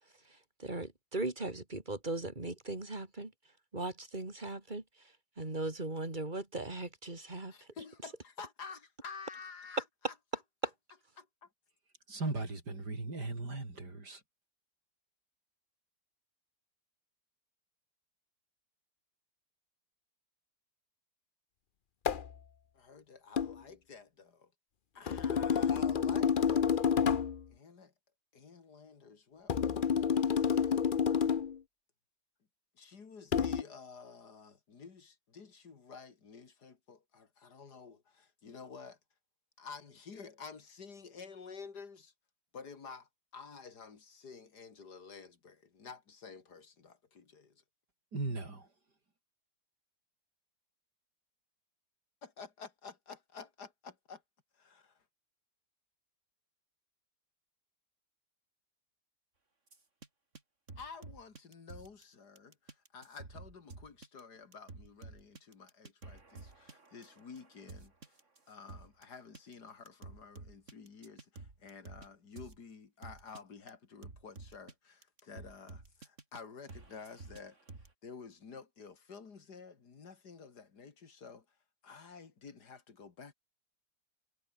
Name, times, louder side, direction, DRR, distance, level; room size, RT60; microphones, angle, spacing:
voice 1, 0.3-3.3 3.7-4.8 5.4-7.5, right 2 dB, 25° right, 3.5 m, -38 dB
voice 2, 7.5-10.1 11.2-11.5 22.7-24.5 24.9-27.1 27.5-27.9 28.3-30.8 32.8-39.0 39.6-42.1 42.5-47.6 52.2-54.2 54.5-55.0 60.8-68.1 68.5-77.6 78.0-81.4 81.8-83.3, left 5 dB, 70° left, 2.8 m, -51 dB
voice 3, 12.1-14.2 48.1-48.7, right 3 dB, 70° right, 5.7 m, -38 dB
sound 1, 22.0-22.3 23.4-23.6 25.1-27.4 29.5-31.6 33.3-33.6, left 7 dB, 45° left, 0.7 m, -29 dB
sound 2, 59.7-60.1 60.3-60.4 60.7-62.0 62.4-69.0 69.3-69.5 69.9-72.1 72.4-72.6 73.0-73.4 73.7-73.8 74.0-74.7 75.0-76.4 76.7-77.9, right 3 dB, 45° right, 3.5 m, -50 dB
omnidirectional pair, 1.8 m